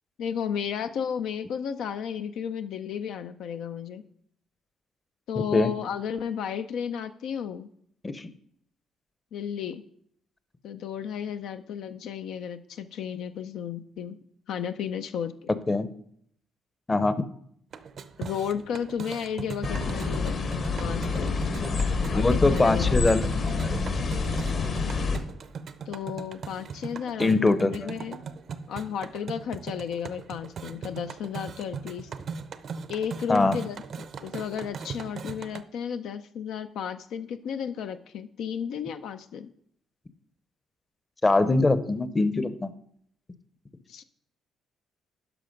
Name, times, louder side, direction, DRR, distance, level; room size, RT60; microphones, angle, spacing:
voice 1, 0.2-4.0 5.3-7.7 9.3-9.8 10.6-14.2 14.5-15.6 18.2-20.4 20.8-21.3 22.1-23.1 25.9-28.2 28.7-32.1 32.9-33.8 34.2-39.5 43.9-44.0, left 8 dB, 80° left, 9 dB, 0.5 m, -33 dB
sound 1, 17.7-35.6, right 6 dB, 60° right, 0.6 m, -39 dB
sound 2, 19.6-25.2, left 4 dB, 60° left, 1.5 m, -27 dB
voice 2, 22.1-23.3 23.6-23.8 27.2-27.9 33.3-33.6 41.2-42.7, left 2 dB, 25° left, 14 dB, 0.7 m, -23 dB
11.0 x 5.7 x 5.2 m, 0.66 s
cardioid pair, 90°, 0 cm